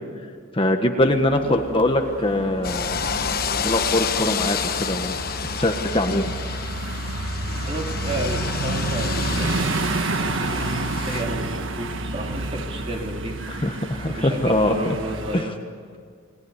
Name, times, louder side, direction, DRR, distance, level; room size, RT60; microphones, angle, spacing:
voice 1, 0.5-3.1 3.6-5.2 5.6-6.3 13.5-14.9 15.3-15.4, left 1 dB, 25° left, 4 dB, 1.5 m, -22 dB
sound 1, 1.0-15.4, right 2 dB, 65° right, 1.5 m, -29 dB
sound 2, 2.6-11.2, left 7 dB, 45° left, 1.2 m, -30 dB
voice 2, 7.6-9.7 10.0-13.7 14.0-15.5, right 1 dB, 30° right, 1 dB, 3.2 m, -32 dB
30.0 x 20.0 x 8.2 m, 2.1 s
head